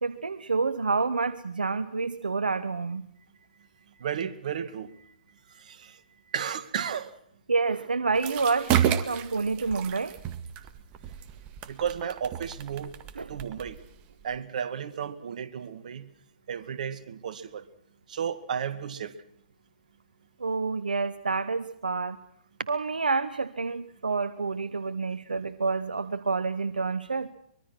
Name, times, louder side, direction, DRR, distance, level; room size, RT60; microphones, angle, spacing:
voice 1, 0.0-3.0 7.5-10.2 13.1-13.4 20.4-22.2 22.7-27.3, right 4 dB, 85° right, 12 dB, 1.2 m, -28 dB
voice 2, 4.0-4.9 5.5-6.0 6.3-7.1 11.7-12.9 13.3-13.8 14.2-16.1 16.5-17.7 18.1-19.1, right 8 dB, 60° right, 10 dB, 2.2 m, -33 dB
sound 1, 8.1-14.4, right 10 dB, 30° right, 1.9 m, -32 dB
24.5 x 22.0 x 6.2 m, 0.66 s
hypercardioid pair, 130°, 5 cm